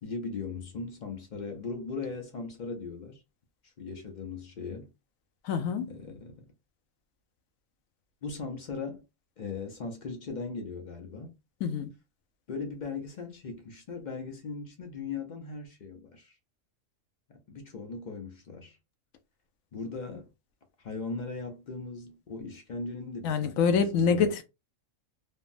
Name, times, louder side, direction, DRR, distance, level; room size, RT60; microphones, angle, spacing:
voice 1, 0.0-3.2 3.6-4.9 5.8-6.5 8.2-9.0 9.4-11.4 12.5-16.4 17.3-18.8 19.7-20.3 20.8-23.5 23.9-24.4, left 4 dB, 55° left, 0.5 m, -38 dB
voice 2, 5.4-5.9 11.6-11.9 23.2-24.4, left 6 dB, 90° left, 1.0 m, -26 dB
3.5 x 2.0 x 2.4 m
omnidirectional pair, 1.4 m